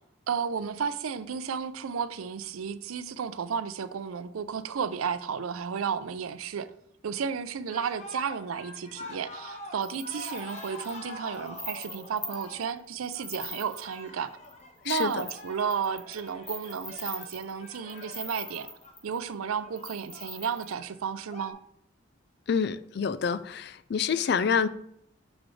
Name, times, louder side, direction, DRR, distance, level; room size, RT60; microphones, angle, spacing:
voice 1, 0.3-6.7 7.0-14.4 14.8-18.7 19.0-21.6, right 6 dB, 90° right, 0.5 m, -33 dB
sound 1, 7.7-21.5, left 1 dB, 35° left, 0.9 m, -45 dB
sound 2, 9.8-12.6 13.0-14.0 14.4-14.5 14.9-19.2 19.8-20.7, left 2 dB, 10° left, 0.6 m, -42 dB
voice 2, 22.5-24.7, left 6 dB, 50° left, 0.3 m, -27 dB
6.1 x 6.0 x 3.2 m
head